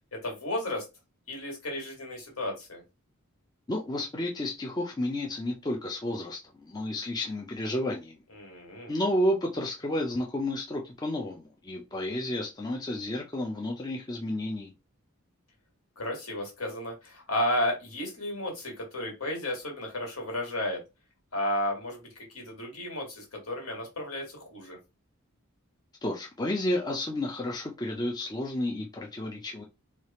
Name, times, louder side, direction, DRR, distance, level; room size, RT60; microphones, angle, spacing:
voice 1, 0.1-0.8 1.3-2.8 8.3-8.9 16.0-20.8 21.3-22.0 22.3-24.8, left 1 dB, 65° left, 1.9 m, -33 dB
voice 2, 3.7-8.2 8.9-14.7 26.0-29.6, left 1 dB, 20° left, 0.5 m, -31 dB
3.3 x 2.4 x 4.2 m
head